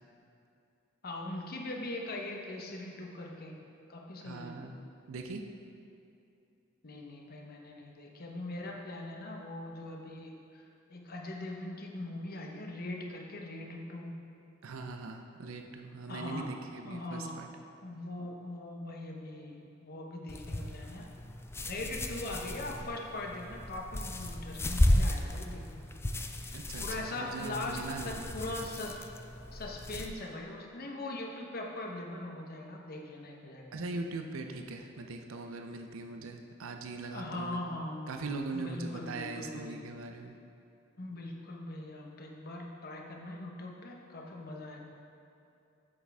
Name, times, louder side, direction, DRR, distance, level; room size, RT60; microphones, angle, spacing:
voice 1, 1.0-3.5 3.9-4.5 6.8-14.1 16.1-16.5 16.9-17.3 17.8-21.1 21.6-25.9 26.8-29.0 29.5-33.6 37.1-38.1 38.5-39.8 41.0-44.8, left 2 dB, 50° left, 0 dB, 0.9 m, -41 dB
voice 2, 4.2-4.8 5.1-5.4 14.6-17.5 26.5-28.7 33.7-37.6 38.1-40.4, right 3 dB, 75° right, 4 dB, 0.5 m, -41 dB
sound 1, 20.3-30.1, left 1 dB, 10° left, 0.3 m, -34 dB
8.4 x 7.2 x 3.5 m, 2.7 s
head